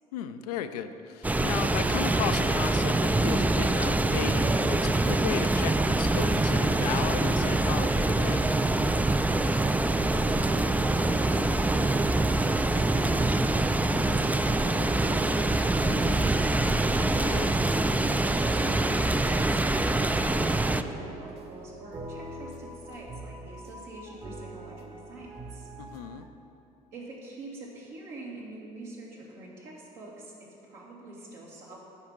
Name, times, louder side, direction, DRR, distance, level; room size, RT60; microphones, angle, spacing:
voice 1, 0.1-8.5 17.2-17.6 25.8-26.3, left 9 dB, 80° left, 9 dB, 0.5 m, -35 dB
sound 1, 1.2-20.8, right 2 dB, 10° right, 0.4 m, -25 dB
voice 2, 10.2-16.8 17.6-25.7 26.9-31.8, right 2 dB, 75° right, -5 dB, 2.4 m, -45 dB
sound 2, 13.4-26.3, right 1 dB, 30° right, 1.2 m, -44 dB
9.7 x 5.1 x 7.3 m, 2.8 s
hypercardioid pair, 55°, 20 cm